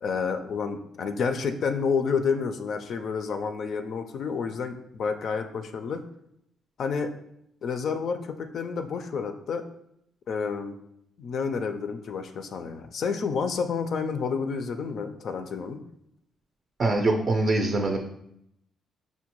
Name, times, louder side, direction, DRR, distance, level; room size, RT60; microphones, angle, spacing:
voice 1, 0.0-6.0 6.8-7.1 7.6-9.7 10.3-10.8 11.2-15.8, left 5 dB, 60° left, 7 dB, 0.4 m, -29 dB
voice 2, 16.8-18.0, right 2 dB, 40° right, 2 dB, 0.4 m, -23 dB
5.2 x 2.1 x 2.9 m, 0.76 s
cardioid pair, 90°, 0 cm